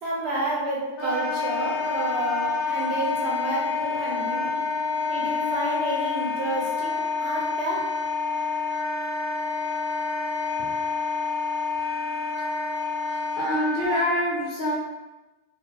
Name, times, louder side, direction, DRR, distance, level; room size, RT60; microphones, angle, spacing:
voice 1, 0.0-4.5 5.1-7.8, right 1 dB, 65° right, -4 dB, 1.0 m, -30 dB
Wind instrument woodwind instrument, 1.0-14.0, left 4 dB, 70° left, 1.6 m, -28 dB
voice 2, 13.1-14.8, left 1 dB, 55° left, -5 dB, 0.6 m, -26 dB
3.7 x 2.7 x 2.8 m, 1.1 s
omnidirectional pair, 1.3 m